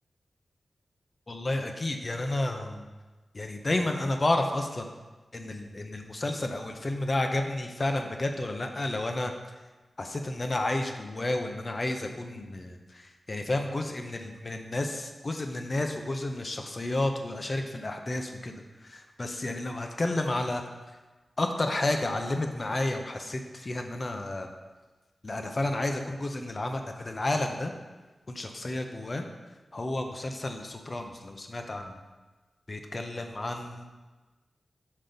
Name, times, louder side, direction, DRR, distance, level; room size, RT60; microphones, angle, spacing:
voice 1, 1.3-2.9 3.3-4.9 5.3-9.3 10.0-18.5 18.8-20.6 21.4-24.5 25.2-27.7 28.3-29.2 29.7-32.0 32.7-33.9, left 2 dB, 40° left, 4 dB, 0.7 m, -31 dB
6.3 x 3.9 x 5.1 m, 1.2 s
cardioid pair, 65°, 0 cm